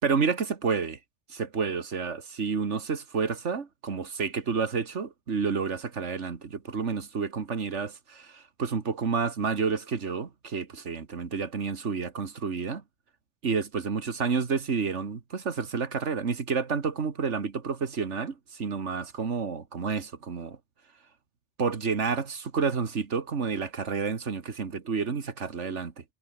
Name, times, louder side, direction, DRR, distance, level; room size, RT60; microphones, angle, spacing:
voice 1, 0.0-1.0 1.3-12.8 13.4-20.6 21.6-26.0, right 5 dB, 85° right, 2.0 m, -30 dB
omnidirectional pair, 1.2 m